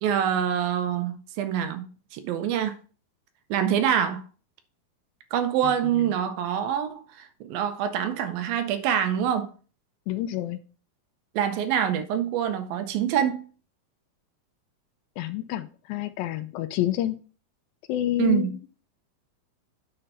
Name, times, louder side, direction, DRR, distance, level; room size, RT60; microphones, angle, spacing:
voice 1, 0.0-2.8 3.5-4.2 5.3-9.5 11.4-13.5 18.2-18.5, right 9 dB, 80° right, 2.5 m, -25 dB
voice 2, 5.6-6.1 10.1-10.6 15.2-17.2 17.9-18.6, left 13 dB, 80° left, 2.2 m, -29 dB
10.0 x 3.4 x 5.4 m
omnidirectional pair, 4.2 m